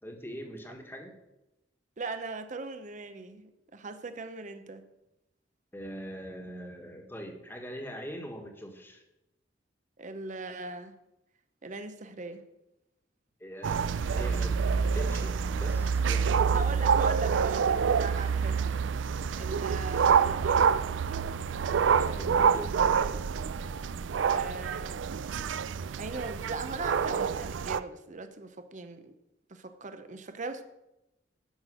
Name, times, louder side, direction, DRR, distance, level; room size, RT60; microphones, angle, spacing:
voice 1, 0.0-1.2 5.7-9.0 13.4-14.6 14.9-16.7 21.9-23.0, equal, 10° left, 3 dB, 1.4 m, -42 dB
voice 2, 2.0-4.8 10.0-10.9 11.6-12.4 16.5-18.7 19.4-20.7 24.3-25.1 26.0-29.1 29.5-30.6, right 3 dB, 45° right, 9 dB, 0.8 m, -39 dB
sound 1, 13.6-27.8, right 6 dB, 80° right, 0.4 m, -27 dB
11.5 x 6.0 x 6.4 m, 0.92 s
head